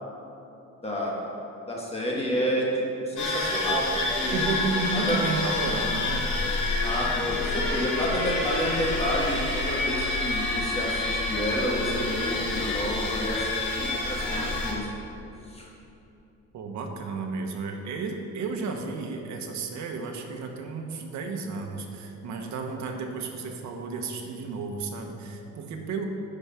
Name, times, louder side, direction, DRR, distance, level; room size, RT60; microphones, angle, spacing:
voice 1, 0.8-1.3 1.7-4.6 4.9-5.2 6.8-14.9 15.4-15.7, equal, 20° left, -3 dB, 1.5 m, -30 dB
sound 1, 3.2-14.7, left 2 dB, 80° left, 2.2 m, -28 dB
voice 2, 4.3-6.3 16.5-26.0, right 4 dB, 70° right, 3 dB, 1.1 m, -32 dB
10.5 x 4.9 x 5.7 m, 2.9 s
cardioid pair, 155°, 30 cm